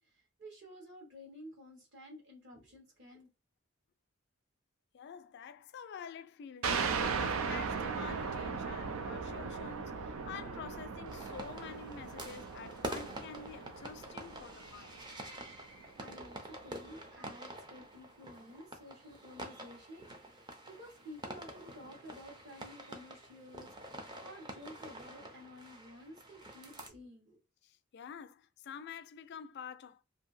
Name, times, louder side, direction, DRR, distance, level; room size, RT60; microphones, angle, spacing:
voice 1, 0.0-3.3 15.8-27.4, equal, 60° right, 1.3 m, -52 dB
voice 2, 4.9-15.0 27.6-30.0, left 6 dB, 55° left, 0.3 m, -48 dB
sound 1, 6.6-15.8, right 5 dB, 85° right, 0.4 m, -38 dB
sound 2, 11.1-26.9, right 1 dB, 20° right, 0.5 m, -47 dB
2.7 x 2.6 x 2.5 m
head